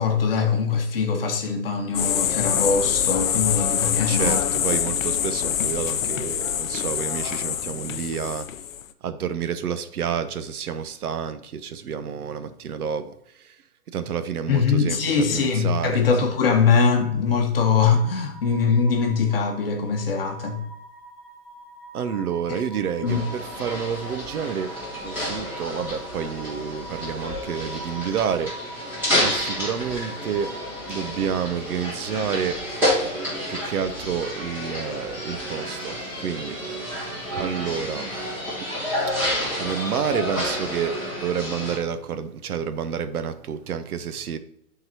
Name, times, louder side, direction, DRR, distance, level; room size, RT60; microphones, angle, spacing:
voice 1, 0.0-4.4 14.5-20.6 22.5-22.6 23.0-23.2, left 5 dB, 40° left, 0.9 m, -22 dB
sound 1, 1.9-8.8, left 9 dB, 60° left, 0.5 m, -25 dB
voice 2, 4.1-8.5 9.0-13.6 13.9-16.0 21.9-24.8 25.0-28.6 29.2-30.5 30.9-32.7 33.5-38.5 39.5-44.4, right 7 dB, 70° right, 0.7 m, -29 dB
sound 2, 17.8-31.4, right 1 dB, 25° right, 0.9 m, -42 dB
sound 3, 23.0-41.8, left 1 dB, 5° right, 1.1 m, -30 dB
10.5 x 4.0 x 2.9 m
hypercardioid pair, 165°, 46 cm